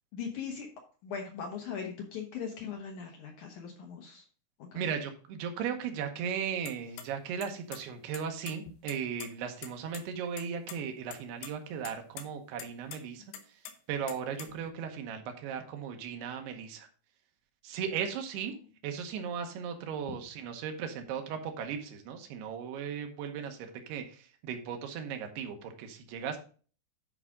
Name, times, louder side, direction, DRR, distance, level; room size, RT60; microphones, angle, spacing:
voice 1, 0.1-0.7 1.0-4.2 4.6-4.9 18.5-18.6, left 6 dB, 70° left, 2 dB, 2.0 m, -40 dB
voice 2, 4.7-13.2 13.9-16.9 17.6-18.5 18.8-26.4, right 7 dB, 85° right, 5 dB, 3.1 m, -37 dB
sound 1, 6.7-7.0 7.4-7.8 8.1-9.3 9.6-9.7 9.9-10.0 10.4-10.8 11.1-11.5 11.8-12.2 12.6-13.0 13.3-14.7, left 9 dB, 85° left, 2.8 m, -44 dB
10.5 x 4.9 x 3.6 m, 0.40 s
omnidirectional pair, 4.6 m